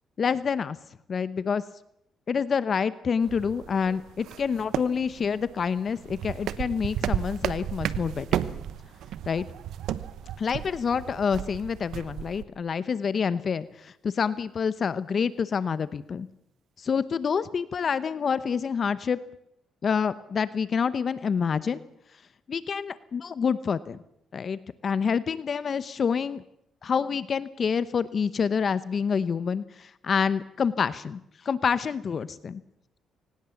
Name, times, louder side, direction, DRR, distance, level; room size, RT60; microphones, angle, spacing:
voice 1, 0.2-0.8 1.1-1.6 2.3-8.3 9.3-9.4 10.4-16.3 16.8-19.2 19.8-21.8 22.5-24.0 24.3-26.4 26.8-32.6, left 6 dB, 45° left, 16 dB, 0.9 m, -27 dB
sound 1, 3.2-12.4, right 10 dB, 80° right, 1.1 m, -34 dB
23.5 x 19.0 x 7.2 m, 0.74 s
cardioid pair, 90°, 0 cm